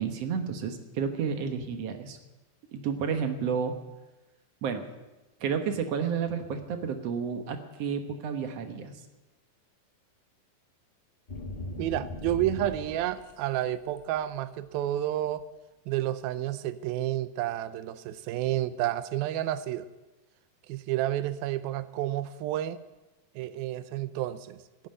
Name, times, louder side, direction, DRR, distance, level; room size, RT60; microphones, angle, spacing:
voice 1, 0.0-2.2 2.7-3.8 4.6-4.8 5.4-9.0, right 6 dB, 60° right, 7 dB, 1.7 m, -31 dB
sound 1, 11.3-13.3 13.7-14.2, left 2 dB, 85° left, 0.4 m, -38 dB
voice 2, 11.8-15.5 15.9-19.9 20.7-22.8 23.4-24.9, right 13 dB, 85° right, 14 dB, 2.6 m, -30 dB
14.0 x 9.3 x 10.0 m, 1.1 s
omnidirectional pair, 4.2 m